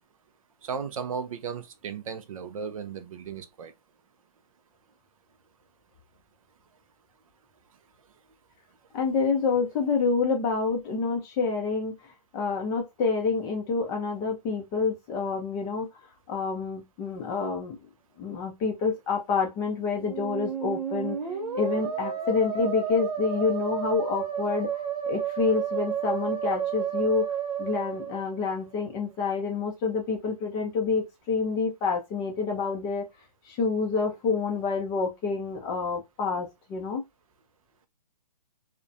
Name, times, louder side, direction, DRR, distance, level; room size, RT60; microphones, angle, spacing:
voice 1, 0.6-3.7, right 6 dB, 55° right, 0.5 m, -35 dB
voice 2, 8.9-11.9 12.3-15.9 16.3-17.8 18.2-21.2 21.5-24.8 25.0-27.3 27.6-33.1 33.4-37.0, left 4 dB, 15° left, 0.4 m, -28 dB
Musical instrument, 20.0-28.7, right 7 dB, 75° right, 0.9 m, -31 dB
2.3 x 2.1 x 2.5 m
hypercardioid pair, 140°, 21 cm